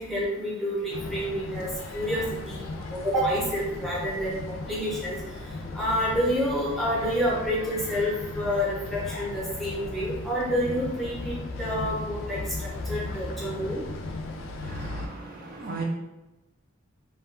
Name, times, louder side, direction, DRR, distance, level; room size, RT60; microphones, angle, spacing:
voice 1, 0.0-2.6 2.9-5.2 5.7-8.1 8.4-12.4 12.9-13.8, equal, ahead, -7 dB, 0.6 m, -28 dB
sound 1, 0.9-15.1, left 2 dB, 75° left, 0.3 m, -36 dB
voice 2, 14.6-15.8, right 3 dB, 45° right, -2 dB, 0.4 m, -37 dB
2.7 x 2.3 x 2.4 m, 1.0 s
head